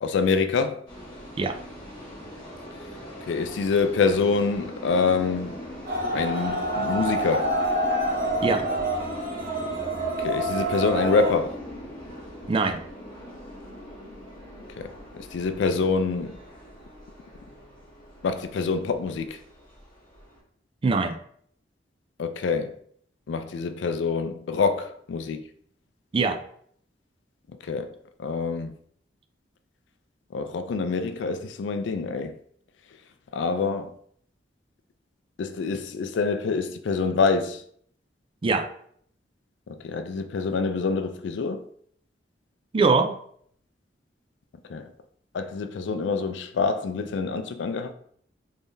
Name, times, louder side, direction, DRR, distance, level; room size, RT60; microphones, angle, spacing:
voice 1, 0.0-0.8 3.2-5.6 6.1-7.6 10.2-11.6 14.8-14.9 15.1-16.4 18.2-19.4 22.2-22.7 23.3-25.4 27.6-27.9 28.2-28.7 30.3-32.3 33.3-33.9 35.4-37.6 39.7-41.6 44.7-44.8 45.3-47.9, left 4 dB, 90° left, 0.4 m, -26 dB
sound 1, 0.9-20.4, equal, 25° left, 1.2 m, -41 dB
sound 2, 5.9-11.3, right 1 dB, 55° right, 1.3 m, -27 dB
voice 2, 12.5-12.8 20.8-21.2 26.1-26.4 38.4-38.7 42.7-43.1, right 4 dB, 30° right, 0.3 m, -22 dB
3.6 x 3.3 x 2.6 m
head